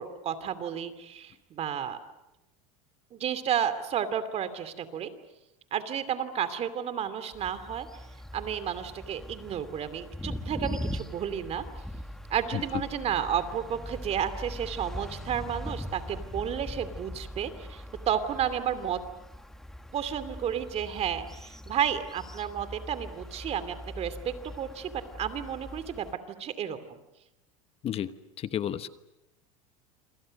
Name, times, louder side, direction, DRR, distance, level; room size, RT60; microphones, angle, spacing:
voice 1, 0.0-2.0 3.1-5.1 5.7-7.9 8.3-11.6 12.3-19.0 19.9-26.1 26.4-27.0, right 9 dB, 40° right, 12 dB, 2.7 m, -32 dB
sound 1, 7.3-26.1, left 1 dB, ahead, 1.8 m, -41 dB
voice 2, 12.5-12.8 27.8-28.9, left 10 dB, 35° left, 12 dB, 1.1 m, -32 dB
27.5 x 26.5 x 6.6 m, 0.93 s
supercardioid pair, 120°, 17 cm